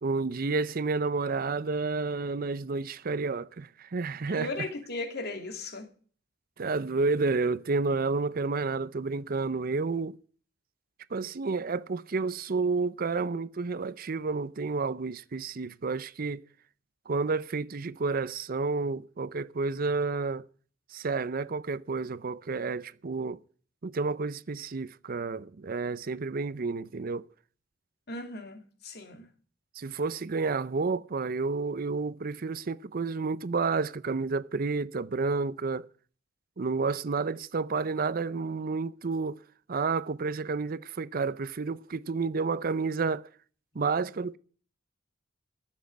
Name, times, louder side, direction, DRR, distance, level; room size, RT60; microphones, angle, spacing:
voice 1, 0.0-4.7 6.6-10.2 11.1-16.4 17.1-20.5 20.9-23.4 23.8-27.2 29.8-35.9 36.6-39.4 39.7-43.3 43.7-44.4, right 4 dB, 50° right, 0.5 m, -30 dB
voice 2, 4.3-5.9 28.1-29.2, left 3 dB, 60° left, 2.5 m, -37 dB
14.0 x 7.5 x 9.4 m
head